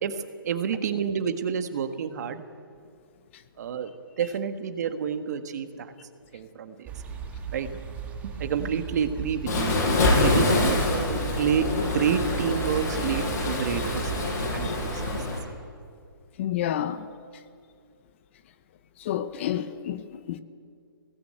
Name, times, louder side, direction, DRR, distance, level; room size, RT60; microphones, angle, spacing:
voice 1, 0.0-2.4 3.6-3.9 4.2-5.9 6.3-6.9 7.5-7.7 8.2-9.7 10.2-15.0, right 7 dB, 45° right, 1.7 m, -29 dB
sound 1, 6.9-15.2, right 5 dB, 10° right, 1.8 m, -36 dB
Waves surf, 9.5-15.4, left 2 dB, 45° left, 6.8 m, -25 dB
voice 2, 16.4-17.1 19.0-20.4, left 11 dB, 30° left, 0.8 m, -30 dB
23.0 x 18.5 x 8.9 m
hypercardioid pair, 160°, 12 cm